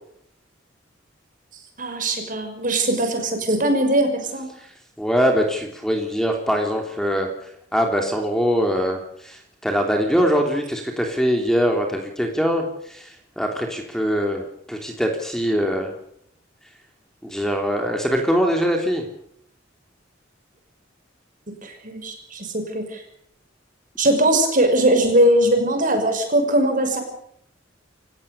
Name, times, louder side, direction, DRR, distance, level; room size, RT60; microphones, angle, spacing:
voice 1, 1.8-4.5 21.6-23.0 24.0-27.0, right 1 dB, 45° right, 5 dB, 6.1 m, -20 dB
voice 2, 5.0-7.3 7.7-15.9 17.2-19.0, equal, 5° left, 3 dB, 3.1 m, -22 dB
28.5 x 16.0 x 7.0 m, 0.70 s
head